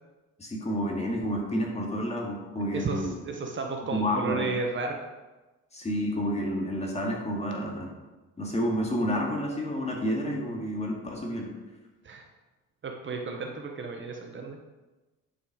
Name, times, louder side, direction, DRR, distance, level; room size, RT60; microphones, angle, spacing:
voice 1, 0.4-3.2 3.9-4.4 5.7-7.9 8.4-11.5, equal, 20° left, -1 dB, 2.2 m, -30 dB
voice 2, 2.7-5.0 12.0-12.2 12.8-14.6, right 3 dB, 35° right, 2 dB, 1.0 m, -33 dB
10.0 x 5.6 x 5.1 m, 1.1 s
cardioid pair, 120°, 33 cm